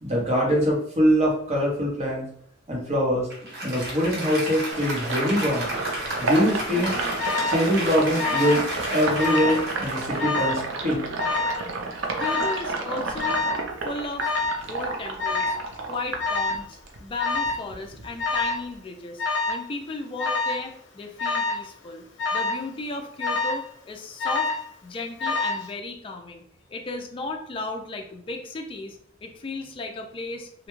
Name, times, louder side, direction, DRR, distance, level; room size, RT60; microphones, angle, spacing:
voice 1, 0.0-2.2 2.7-3.3 3.6-5.7 6.2-6.9 7.5-11.0, equal, 35° right, -2 dB, 0.8 m, -23 dB
Applause, 3.3-10.9, right 1 dB, 60° right, 0.9 m, -32 dB
Sink (filling or washing), 4.7-17.0 17.3-18.8, right 3 dB, 80° right, 0.5 m, -31 dB
Alarm, 7.2-7.6 8.2-8.7 8.9-9.6 10.2-10.6 11.2-11.6 12.2-12.6 13.2-13.6 14.2-14.6 15.2-15.6 16.2-16.6 17.2-17.6 18.2-18.6 19.2-19.6 20.2-20.6 21.2-21.6 22.2-22.6 23.2-23.7 24.2-24.7 25.2-25.7, left 3 dB, 70° left, 0.6 m, -26 dB
voice 2, 12.2-13.4 13.8-14.3 14.7-15.6 15.9-22.0 22.3-24.5 24.8-26.4 26.7-30.7, left 3 dB, 30° left, 4 dB, 0.3 m, -35 dB
2.2 x 2.1 x 3.0 m, 0.64 s
head